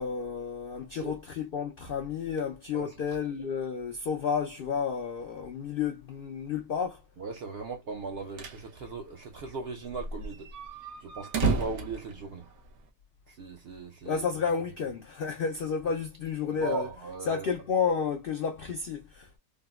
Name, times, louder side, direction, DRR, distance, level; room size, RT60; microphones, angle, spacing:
voice 1, 0.0-7.0 14.1-16.9 17.3-19.4, left 6 dB, 70° left, 0.5 m, -31 dB
voice 2, 7.2-10.5 11.0-12.5 13.3-14.2 16.5-17.5, right 4 dB, 65° right, 0.6 m, -38 dB
sound 1, 8.0-8.7 9.0-9.1 9.3-9.4 9.9-12.9, right 3 dB, 90° right, 1.3 m, -32 dB
3.6 x 2.0 x 2.2 m
omnidirectional pair, 1.5 m